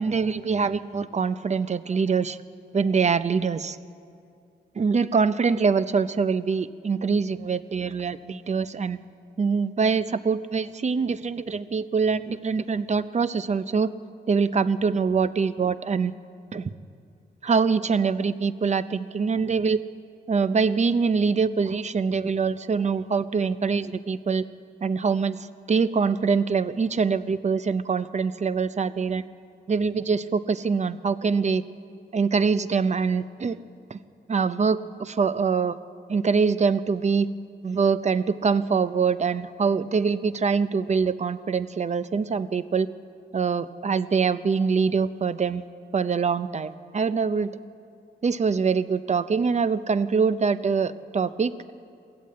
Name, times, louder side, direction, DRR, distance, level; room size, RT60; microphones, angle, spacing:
voice 1, 0.0-2.4 2.7-3.8 4.7-9.0 9.4-13.9 14.3-16.1 16.5-16.7 17.4-19.8 20.3-24.4 24.8-29.2 29.7-31.6 32.1-33.6 33.9-34.0 34.3-35.8 36.1-37.3 37.6-42.9 43.3-45.6 45.9-47.5 48.2-51.7, right 5 dB, 40° right, 14 dB, 0.7 m, -24 dB
22.5 x 15.0 x 8.7 m, 2.5 s
wide cardioid pair, 105°, 18 cm